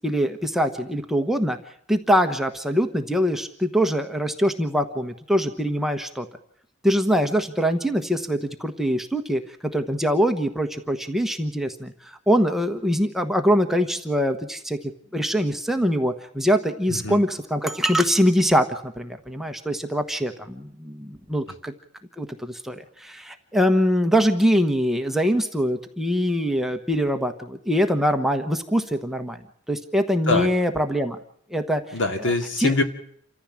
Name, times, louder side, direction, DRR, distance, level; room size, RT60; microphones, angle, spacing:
voice 1, 0.0-1.6 1.9-6.3 6.8-14.8 15.1-21.7 22.2-29.4 29.7-31.2 31.5-31.8 32.6-32.7, equal, ahead, 5 dB, 1.2 m, -23 dB
voice 2, 16.9-17.2 30.3-30.5 31.9-32.8, left 2 dB, 60° left, 7 dB, 2.4 m, -23 dB
28.5 x 14.0 x 7.5 m, 0.67 s
head